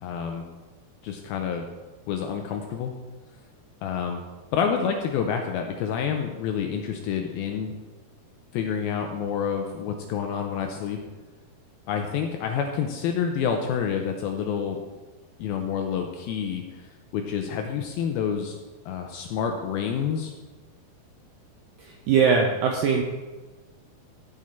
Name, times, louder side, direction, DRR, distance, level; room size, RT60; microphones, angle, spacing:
voice 1, 0.0-0.4 1.0-1.6 2.1-2.9 3.8-4.2 4.5-7.8 8.5-11.0 11.9-14.8 15.4-18.6 18.9-20.3, left 7 dB, 85° left, 4 dB, 2.2 m, -28 dB
voice 2, 22.1-23.0, right 6 dB, 85° right, 2 dB, 2.0 m, -20 dB
14.5 x 5.0 x 4.3 m, 1.2 s
omnidirectional pair, 4.9 m